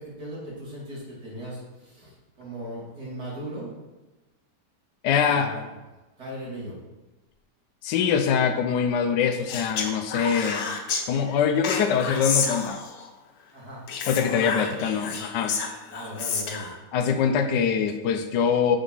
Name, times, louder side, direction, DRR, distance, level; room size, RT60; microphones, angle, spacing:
voice 1, 0.0-3.7 5.0-5.6 6.2-6.7 13.5-13.8 14.4-14.7 15.9-16.7, equal, 65° right, -7 dB, 3.4 m, -38 dB
voice 2, 5.0-5.5 7.8-10.7 11.1-12.8 14.1-15.6 16.9-18.8, left 7 dB, 85° left, 6 dB, 1.3 m, -23 dB
Speech, 9.5-11.0 11.6-13.1 13.9-16.7, left 5 dB, 65° left, 1.3 m, -30 dB
6.1 x 5.2 x 5.5 m, 1.1 s
omnidirectional pair, 1.8 m